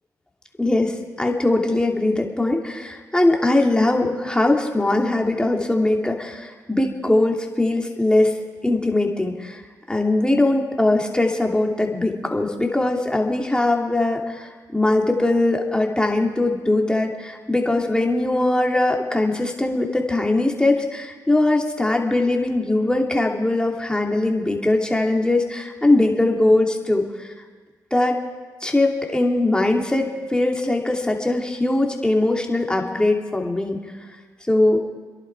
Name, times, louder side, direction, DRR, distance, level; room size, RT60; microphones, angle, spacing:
voice 1, 0.6-9.6 9.9-27.3 27.9-28.2 28.6-33.8 34.5-34.8, left 2 dB, 10° left, 1 dB, 2.8 m, -21 dB
27.0 x 11.0 x 4.8 m, 1.4 s
supercardioid pair, 55°, 8 cm